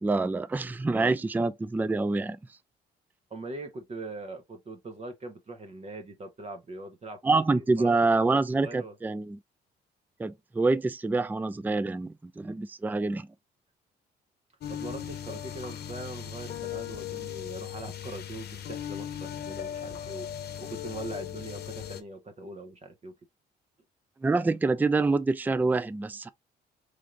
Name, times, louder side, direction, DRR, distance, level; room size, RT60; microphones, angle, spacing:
voice 1, 0.0-2.4 7.2-9.4 10.2-13.3 24.2-26.3, right 3 dB, 10° right, 0.3 m, -26 dB
voice 2, 3.3-7.2 7.8-8.0 8.3-8.9 14.7-20.3 20.6-23.1, right 2 dB, 35° right, 0.8 m, -41 dB
sound 1, 14.6-22.0, left 10 dB, 65° left, 0.8 m, -38 dB
3.3 x 2.5 x 3.8 m
cardioid pair, 75°, 18 cm